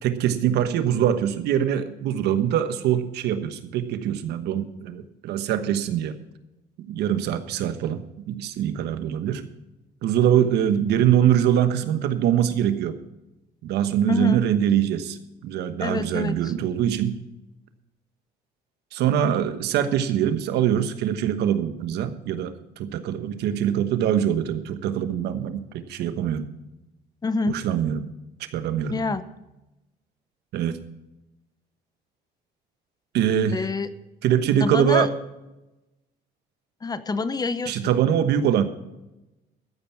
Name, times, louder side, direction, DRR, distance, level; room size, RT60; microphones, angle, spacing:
voice 1, 0.0-6.2 6.9-9.4 10.0-13.0 13.6-15.2 15.4-17.2 18.9-26.5 27.5-28.0 28.5-29.1 30.5-30.8 33.1-33.6 34.2-35.1 37.7-38.6, right 10 dB, 80° right, 10 dB, 1.2 m, -23 dB
voice 2, 14.1-14.4 15.8-16.5 27.2-27.6 28.9-29.2 33.5-33.9 34.6-35.1 36.8-37.8, left 4 dB, 25° left, 13 dB, 0.8 m, -26 dB
13.5 x 9.2 x 5.9 m, 0.98 s
cardioid pair, 110°, 17 cm